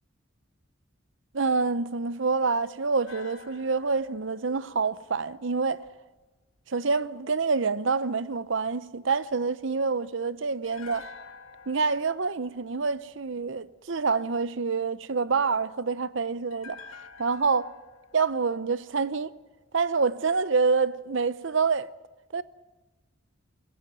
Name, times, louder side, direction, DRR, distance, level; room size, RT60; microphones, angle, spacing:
voice 1, 1.3-5.8 6.7-11.0 11.7-16.8 17.2-17.7 18.1-19.3 19.7-21.9 22.3-22.4, right 4 dB, 65° right, 0.7 m, -27 dB
sound 1, 3.1-6.2 10.6-13.9 16.5-19.7 20.0-20.1, left 4 dB, 90° left, 1.7 m, -50 dB
22.5 x 17.5 x 9.2 m
head